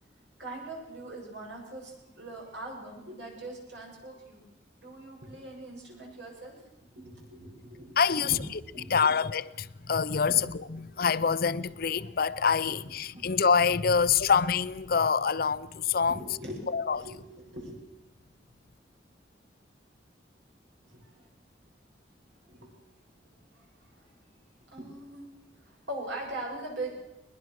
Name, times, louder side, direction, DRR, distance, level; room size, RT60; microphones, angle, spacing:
voice 1, 0.4-4.4 4.8-6.6 6.9-8.4 8.7-9.1 10.2-10.4 12.7-12.8 13.1-13.3 16.1-17.8 20.8-21.3 22.4-22.8 23.5-24.1 24.7-25.3 25.5-26.9, right 1 dB, 80° right, 7.6 m, -41 dB
voice 2, 8.0-8.4 8.9-16.2 16.7-17.0, left 6 dB, 55° left, 0.6 m, -26 dB
21.5 x 21.0 x 6.5 m
head